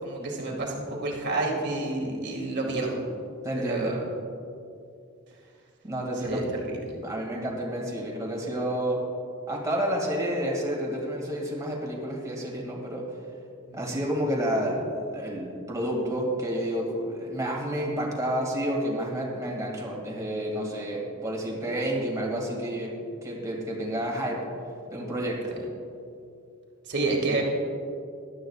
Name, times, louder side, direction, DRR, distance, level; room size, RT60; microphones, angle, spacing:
voice 1, 0.0-3.0 3.5-4.0 6.2-7.0 13.7-13.8 26.9-27.4, right 2 dB, 55° right, 0 dB, 2.0 m, -29 dB
voice 2, 3.4-4.0 5.8-6.4 7.0-9.0 9.5-13.0 13.7-22.9 23.2-24.4 24.9-25.4, equal, 15° right, -2 dB, 2.2 m, -30 dB
17.5 x 12.0 x 2.4 m, 2.5 s
head